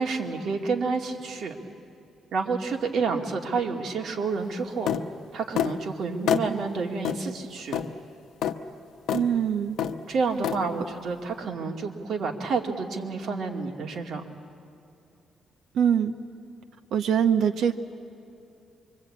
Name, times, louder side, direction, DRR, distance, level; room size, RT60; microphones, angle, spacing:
voice 1, 0.0-1.5 2.3-4.9 5.3-7.8 10.1-14.2, right 4 dB, 55° right, 2 dB, 2.4 m, -29 dB
sound 1, 4.9-5.0 5.6-5.8 6.3-6.5 7.0-7.2 7.7-7.9 8.4-8.6 9.1-9.3 9.8-10.0 10.4-10.6, left 9 dB, 80° left, 1.0 m, -26 dB
voice 2, 9.1-9.8 15.7-16.1 16.9-17.7, right 8 dB, 75° right, 5 dB, 1.0 m, -23 dB
25.0 x 24.5 x 8.7 m, 2.7 s
cardioid pair, 135°, 0 cm